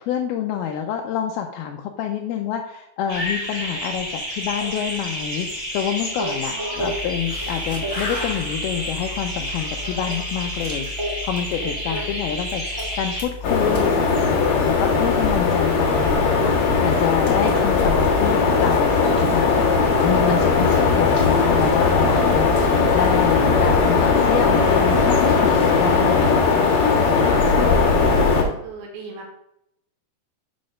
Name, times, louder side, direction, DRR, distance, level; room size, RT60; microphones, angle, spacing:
voice 1, 0.0-10.9 11.2-19.7 20.0-26.7, left 9 dB, 85° left, 2 dB, 2.5 m, -27 dB
sound 1, 3.1-13.2, equal, 10° right, 1.5 m, -29 dB
voice 2, 6.5-7.0 11.8-12.1 27.2-27.7 28.1-29.3, right 4 dB, 75° right, -1 dB, 3.2 m, -39 dB
sound 2, 6.7-25.7, left 3 dB, 25° left, 1.1 m, -36 dB
sound 3, 13.4-28.4, left 4 dB, 55° left, 2.6 m, -18 dB
6.7 x 4.1 x 6.2 m, 0.78 s
omnidirectional pair, 4.3 m